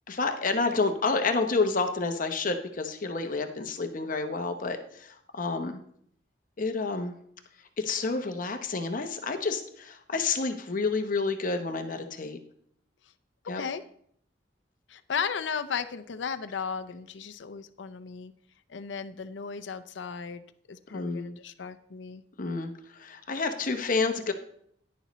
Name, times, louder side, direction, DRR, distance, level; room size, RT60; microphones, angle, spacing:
voice 1, 0.1-5.8 6.6-7.1 7.8-12.4 13.5-13.6 20.9-21.3 22.4-24.3, left 4 dB, 50° left, 6 dB, 0.8 m, -29 dB
voice 2, 13.4-13.9 14.9-18.3 18.7-20.4 20.7-22.2, left 6 dB, 80° left, 10 dB, 0.5 m, -35 dB
11.0 x 10.5 x 3.1 m, 0.66 s
head